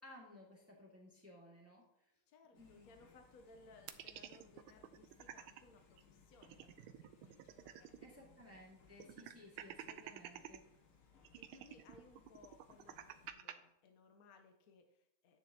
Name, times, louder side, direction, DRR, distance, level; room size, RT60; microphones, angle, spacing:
voice 1, 0.0-1.8 2.5-2.9 8.0-10.6, left 1 dB, 5° right, -2 dB, 1.7 m, -58 dB
voice 2, 2.3-8.4 11.4-15.4, left 3 dB, 60° left, 5 dB, 1.0 m, -64 dB
sound 1, 2.5-13.3, left 5 dB, 85° left, 2.4 m, -67 dB
sound 2, 3.9-5.6 6.0-6.1 6.3-8.1 8.4-8.5 9.0-10.6 11.2-13.5, right 11 dB, 80° right, 1.5 m, -51 dB
10.0 x 9.0 x 2.8 m, 0.81 s
omnidirectional pair, 2.4 m